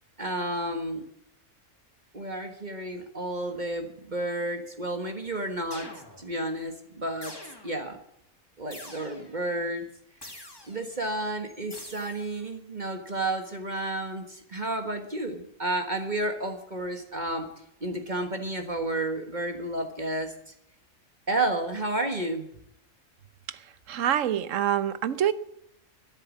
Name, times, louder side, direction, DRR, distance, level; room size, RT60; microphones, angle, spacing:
voice 1, 0.2-1.0 2.1-5.9 6.2-7.3 7.6-8.0 8.6-9.8 10.2-17.5 17.8-20.3 21.3-22.5, right 1 dB, 35° right, 1.5 m, -31 dB
sound 1, 5.7-6.4 7.2-7.9 8.7-9.4 10.2-10.9 11.7-12.4, left 1 dB, 15° left, 2.2 m, -45 dB
voice 2, 23.9-25.3, right 10 dB, 65° right, 1.1 m, -26 dB
12.5 x 11.0 x 7.3 m
omnidirectional pair, 1.5 m